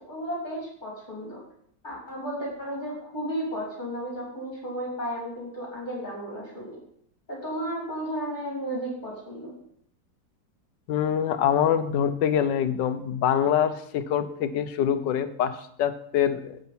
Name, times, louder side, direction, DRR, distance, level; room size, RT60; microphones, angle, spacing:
voice 1, 0.1-1.4 1.8-6.7 7.3-9.6, equal, 25° left, -4 dB, 3.3 m, -33 dB
voice 2, 10.9-16.6, left 9 dB, 85° left, 11 dB, 1.4 m, -25 dB
11.0 x 8.1 x 4.3 m, 0.68 s
omnidirectional pair, 1.8 m